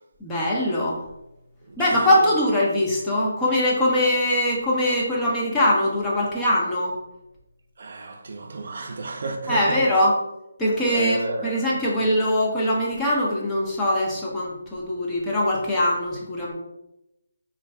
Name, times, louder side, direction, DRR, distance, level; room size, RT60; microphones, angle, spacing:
voice 1, 0.2-1.0 1.8-6.9 9.5-10.1 10.6-16.5, left 1 dB, 10° left, 0.7 m, -22 dB
voice 2, 1.7-2.3 7.8-10.1 10.8-11.9, right 2 dB, 55° right, 0.5 m, -32 dB
3.1 x 2.6 x 3.3 m
figure-of-eight pair, 155°, 0 cm